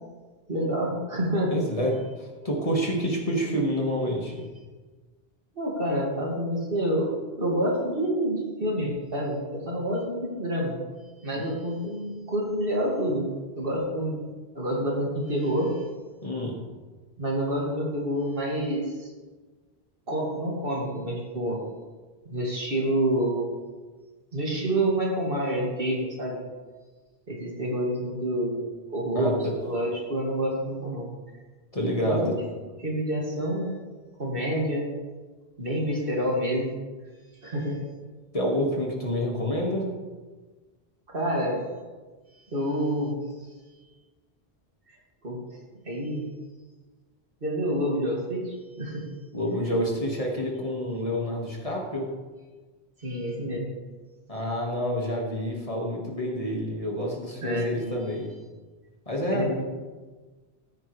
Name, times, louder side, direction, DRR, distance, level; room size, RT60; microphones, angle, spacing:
voice 1, 0.5-1.6 5.5-7.1 7.4-10.8 11.2-13.3 13.6-14.2 14.5-15.9 17.2-19.1 20.1-21.6 22.3-23.5 24.3-26.4 27.3-28.6 28.9-29.3 29.6-31.4 32.0-32.4 32.8-33.8 34.2-34.9 35.6-36.7 37.4-37.8 41.1-41.6 42.5-43.1 44.9-45.0 45.2-45.4 45.9-46.2 47.4-49.1 53.0-53.7 57.4-57.8 59.3-59.6, right 1 dB, 60° right, -2 dB, 2.5 m, -28 dB
voice 2, 1.5-4.5 11.3-11.4 16.2-16.6 29.2-29.5 31.7-32.3 38.3-39.9 49.3-52.1 54.3-58.3 59.1-59.6, equal, 35° left, -2 dB, 1.9 m, -28 dB
14.0 x 9.6 x 3.3 m, 1.3 s
omnidirectional pair, 1.1 m